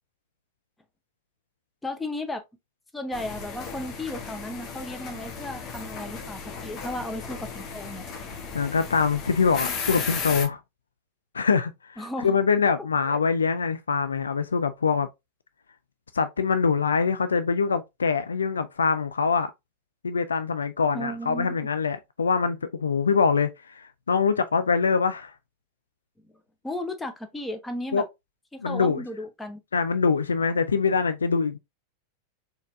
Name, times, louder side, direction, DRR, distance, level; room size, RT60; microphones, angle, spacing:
voice 1, 1.8-2.4 2.9-8.1 12.0-12.4 13.1-13.2 20.9-21.6 26.2-26.3 26.6-28.0 28.5-29.6, left 1 dB, 10° left, 0.8 m, -34 dB
sound 1, 3.1-10.5, left 5 dB, 35° left, 1.2 m, -35 dB
voice 2, 8.5-10.6 11.3-15.1 16.1-19.5 20.0-25.3 27.9-28.1 28.6-29.0 29.7-31.6, left 5 dB, 70° left, 0.4 m, -24 dB
4.2 x 3.5 x 2.6 m
figure-of-eight pair, 90°, 0 cm